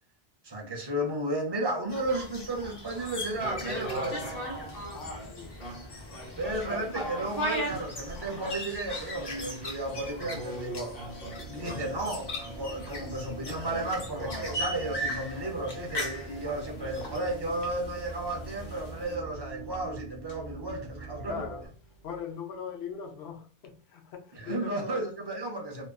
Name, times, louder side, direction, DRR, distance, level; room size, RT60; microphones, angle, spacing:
voice 1, 0.4-4.3 6.4-11.0 11.5-21.5 24.3-25.9, right 1 dB, 40° right, 0.4 m, -33 dB
sound 1, 1.9-19.2, left 1 dB, 45° left, 0.3 m, -41 dB
sound 2, 3.3-21.4 21.8-21.9, equal, 65° left, 1.1 m, -39 dB
voice 2, 4.9-5.6 21.2-21.7 22.0-25.0, left 6 dB, 85° left, 0.8 m, -40 dB
sound 3, 10.2-21.7, right 3 dB, 10° left, 0.9 m, -44 dB
2.4 x 2.3 x 2.3 m
omnidirectional pair, 1.1 m